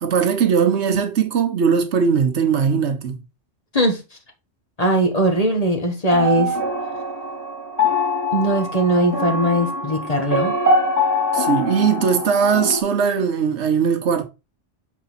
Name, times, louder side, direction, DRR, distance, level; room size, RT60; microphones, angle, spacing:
voice 1, 0.0-3.2 11.3-14.2, right 6 dB, 70° right, 1.1 m, -19 dB
voice 2, 4.8-6.5 8.3-10.5, right 1 dB, 35° left, 1.3 m, -19 dB
sound 1, 6.1-12.8, left 1 dB, 15° left, 2.0 m, -23 dB
6.5 x 4.1 x 4.0 m
omnidirectional pair, 1.2 m